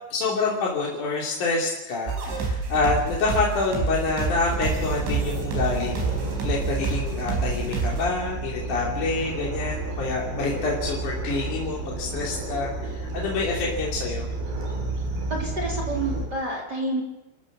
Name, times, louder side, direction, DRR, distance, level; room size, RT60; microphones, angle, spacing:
voice 1, 0.1-14.3, left 3 dB, 45° left, -3 dB, 3.8 m, -27 dB
sound 1, 2.1-8.0, right 4 dB, 85° right, 7.6 m, -28 dB
sound 2, 4.5-16.3, right 3 dB, 55° right, 6.4 m, -31 dB
voice 2, 15.3-17.0, right 2 dB, 25° right, 0 dB, 3.6 m, -29 dB
29.5 x 14.0 x 7.5 m, 1.0 s
omnidirectional pair, 5.4 m